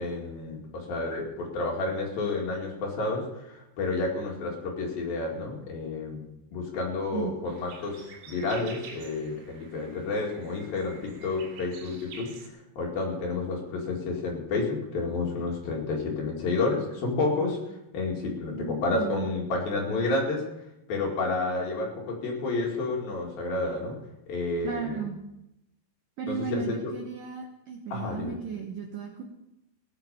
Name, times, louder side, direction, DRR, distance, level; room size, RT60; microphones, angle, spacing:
voice 1, 0.0-6.3 6.5-12.3 12.8-17.6 17.9-20.5 20.9-24.0 24.3-25.1 26.3-26.9 27.9-28.4, left 3 dB, 55° left, -1 dB, 3.7 m, -30 dB
sound 1, 7.5-12.5, right 5 dB, 70° right, 4.5 m, -48 dB
voice 2, 18.5-19.3 24.6-25.2 26.2-29.2, right 6 dB, 90° right, 2 dB, 1.9 m, -35 dB
17.0 x 8.1 x 7.0 m, 0.88 s
omnidirectional pair, 5.7 m